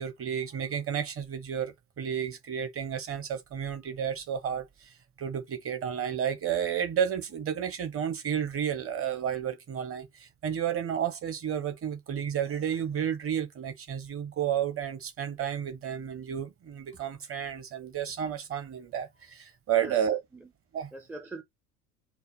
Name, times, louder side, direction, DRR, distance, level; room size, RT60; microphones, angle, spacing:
voice 1, 0.0-20.2 20.7-20.9, right 9 dB, 30° right, 1.2 m, -32 dB
voice 2, 19.8-20.5 20.9-21.4, right 2 dB, 5° right, 0.6 m, -43 dB
4.8 x 2.3 x 4.9 m
figure-of-eight pair, 75°, 47 cm